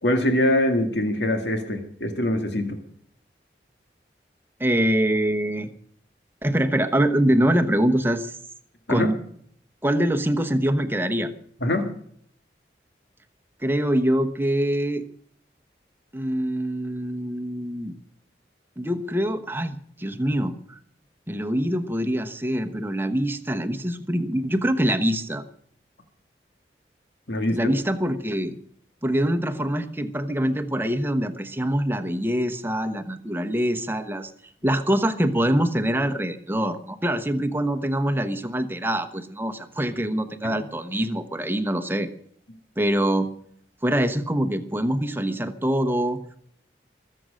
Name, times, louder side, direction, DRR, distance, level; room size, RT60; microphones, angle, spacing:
voice 1, 0.0-2.7 8.9-9.1 11.6-11.9 27.3-27.6 40.4-40.6, left 1 dB, 85° left, 5 dB, 1.9 m, -23 dB
voice 2, 4.6-5.7 6.4-8.4 8.9-9.2 9.8-11.3 13.6-15.1 16.1-17.9 18.8-20.8 21.3-25.4 27.5-28.6 29.0-34.3 34.6-42.1 42.8-43.3 43.8-46.2, right 1 dB, 10° right, 7 dB, 1.0 m, -24 dB
22.5 x 7.7 x 6.5 m, 0.63 s
head